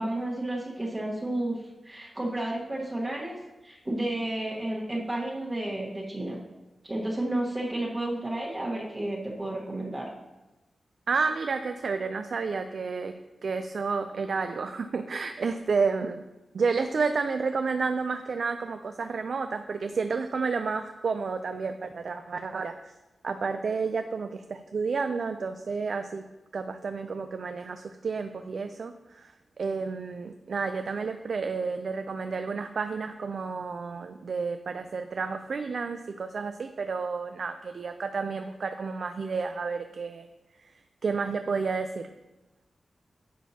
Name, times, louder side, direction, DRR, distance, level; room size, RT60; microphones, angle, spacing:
voice 1, 0.0-3.3 3.6-6.4 6.8-10.1, right 1 dB, 25° right, -4 dB, 1.3 m, -32 dB
voice 2, 11.1-16.2 16.5-22.9 23.2-26.2 26.5-40.3 40.6-40.7 41.0-42.1, right 4 dB, 70° right, 8 dB, 0.4 m, -31 dB
10.0 x 6.3 x 2.8 m, 1.1 s
wide cardioid pair, 90°, 0 cm